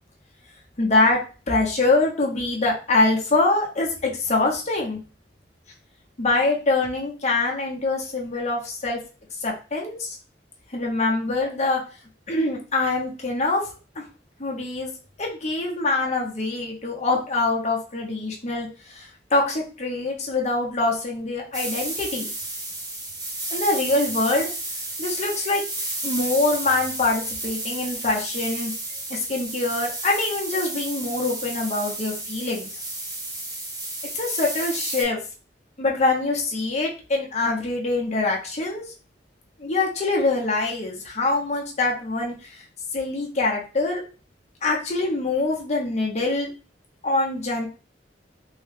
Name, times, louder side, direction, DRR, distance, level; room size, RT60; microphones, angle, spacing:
voice 1, 0.8-1.2 1.5-5.0 6.2-9.0 9.4-10.2 10.7-11.8 12.3-13.7 14.0-14.1 14.4-14.9 15.2-22.3 23.5-24.5 25.0-25.6 26.0-28.7 29.1-32.8 34.1-35.2 35.8-38.8 39.6-42.6 42.9-44.0 44.6-46.5 47.0-47.7, left 2 dB, 40° left, -1 dB, 0.9 m, -24 dB
sound 1, 21.5-35.0, right 2 dB, 20° right, 0.9 m, -32 dB
3.6 x 2.2 x 3.3 m, 0.36 s
head